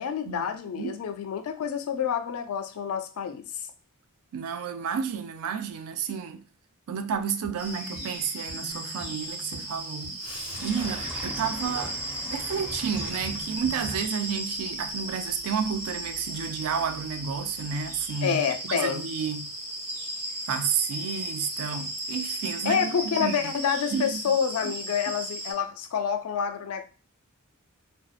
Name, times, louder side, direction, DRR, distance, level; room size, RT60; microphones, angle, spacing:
voice 1, 0.0-3.5 18.2-19.0 22.6-26.8, left 7 dB, 75° left, 0.4 m, -28 dB
voice 2, 4.3-6.4 6.9-10.1 10.6-12.0 12.3-19.5 20.5-23.5 23.9-24.2, right 7 dB, 70° right, 0.3 m, -31 dB
sound 1, 7.1-14.0, equal, 90° right, 1.2 m, -46 dB
sound 2, 7.6-25.5, right 1 dB, 45° right, 1.0 m, -36 dB
Sink (filling or washing), 10.2-18.1, equal, 5° right, 0.6 m, -42 dB
2.6 x 2.0 x 2.4 m
head